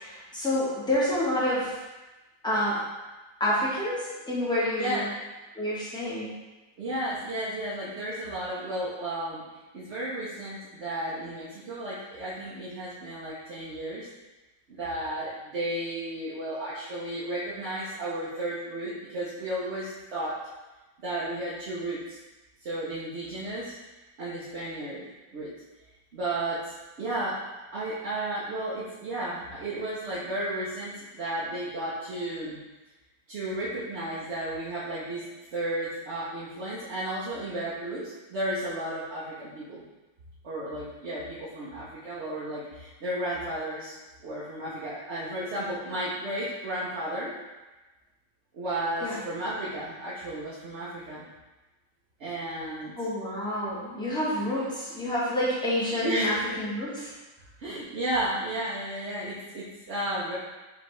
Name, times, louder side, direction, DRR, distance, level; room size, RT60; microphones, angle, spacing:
voice 1, 0.0-1.8 2.4-2.9 3.4-5.1 5.6-6.3 49.0-49.2 53.0-57.1, left 1 dB, 5° left, -8 dB, 0.9 m, -28 dB
voice 2, 6.8-9.4 9.7-14.1 14.7-20.3 21.0-22.2 22.6-23.8 24.2-25.0 25.3-25.5 26.1-26.7 27.0-27.4 27.7-32.6 33.3-39.8 40.4-43.9 44.2-47.3 48.5-51.3 52.2-52.9 55.9-56.3 57.6-60.4, right 1 dB, 50° right, -9 dB, 0.9 m, -33 dB
5.0 x 3.3 x 3.1 m, 1.1 s
omnidirectional pair, 1.9 m